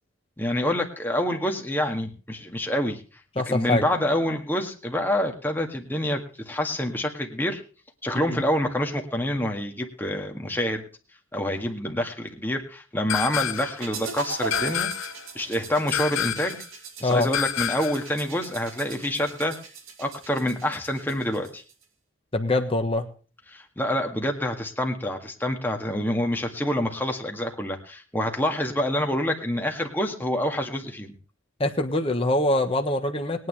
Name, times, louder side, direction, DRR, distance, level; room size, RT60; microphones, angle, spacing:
voice 1, 0.4-3.0 3.5-7.6 8.0-10.8 11.3-14.9 15.4-16.6 17.0-19.5 20.0-21.6 23.5-31.1, left 1 dB, 10° left, 3 dB, 1.8 m, -27 dB
voice 2, 3.4-3.9 8.1-8.4 17.0-17.3 22.3-23.1 31.6-33.5, left 1 dB, 25° left, 4 dB, 1.3 m, -24 dB
sound 1, 13.1-13.8 14.5-15.2 15.9-16.6 17.3-18.1, left 9 dB, 80° left, 0.9 m, -28 dB
sound 2, 13.8-21.8, right 4 dB, 85° right, 2.8 m, -39 dB
21.5 x 9.5 x 3.3 m, 0.37 s
head